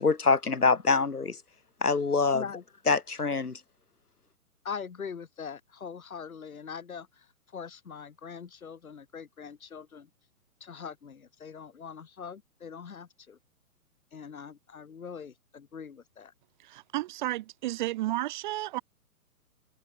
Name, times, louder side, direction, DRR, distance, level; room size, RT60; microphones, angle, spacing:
voice 1, 0.0-1.4 1.8-2.4 2.9-3.6, left 4 dB, 85° left, 2.1 m, -25 dB
voice 2, 2.3-2.6 4.6-10.1 10.6-13.4 14.1-16.3, left 6 dB, 70° left, 3.5 m, -42 dB
voice 3, 16.6-18.8, right 16 dB, 30° right, 1.2 m, -32 dB
figure-of-eight pair, 125°, 44 cm